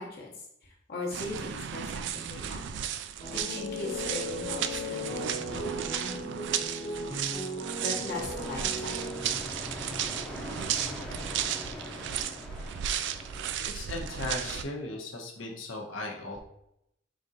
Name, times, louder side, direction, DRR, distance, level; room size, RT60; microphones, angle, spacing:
voice 1, 0.0-2.7 3.3-6.3 7.8-9.1, left 2 dB, 55° left, -4 dB, 1.0 m, -39 dB
sound 1, 1.1-14.6, right 9 dB, 60° right, 0.3 m, -34 dB
sound 2, 3.2-9.6, left 1 dB, 25° left, 1.0 m, -37 dB
sound 3, 7.9-13.5, left 1 dB, 5° left, 0.6 m, -42 dB
voice 2, 13.6-16.4, left 2 dB, 85° left, 0 dB, 0.9 m, -37 dB
5.1 x 2.5 x 4.0 m, 0.80 s
head